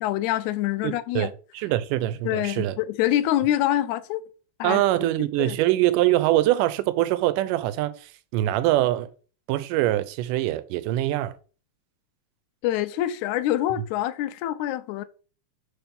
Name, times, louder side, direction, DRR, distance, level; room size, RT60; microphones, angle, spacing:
voice 1, 0.0-1.3 2.2-4.2 4.6-5.5 12.6-15.0, left 13 dB, 80° left, 1.8 m, -26 dB
voice 2, 0.8-2.8 4.6-9.1 9.5-11.3, right 15 dB, 85° right, 2.1 m, -24 dB
4.6 x 4.4 x 5.2 m
omnidirectional pair, 3.7 m